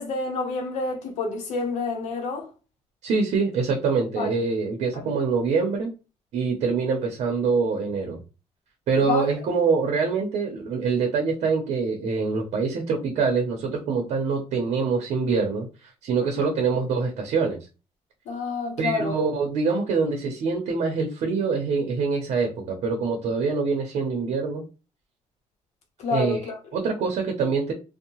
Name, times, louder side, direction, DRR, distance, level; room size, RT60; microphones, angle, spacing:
voice 1, 0.0-2.5 4.2-4.4 4.9-5.0 9.1-9.3 16.2-16.5 18.3-19.2 26.0-26.6, left 4 dB, 80° left, 0.8 m, -28 dB
voice 2, 3.0-5.9 6.3-8.2 8.9-17.6 18.8-24.6 26.1-27.7, right 4 dB, 70° right, 0.6 m, -25 dB
2.7 x 2.1 x 2.8 m
cardioid pair, 150°, 12 cm